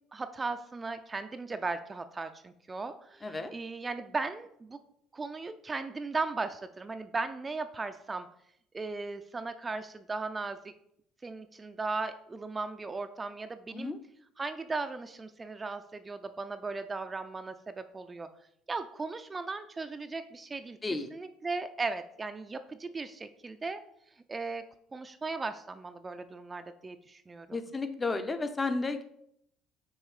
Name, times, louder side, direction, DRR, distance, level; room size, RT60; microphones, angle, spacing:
voice 1, 0.1-4.8 5.1-8.3 8.7-10.7 11.2-13.9 14.4-18.3 18.7-20.8 21.1-23.8 24.3-24.6 24.9-27.6, right 3 dB, 25° right, 9 dB, 0.4 m, -37 dB
voice 2, 3.2-3.5 13.7-14.0 20.8-21.1 27.5-29.0, left 3 dB, 25° left, 9 dB, 0.7 m, -32 dB
6.4 x 3.1 x 4.9 m, 0.72 s
hypercardioid pair, 70°, 0 cm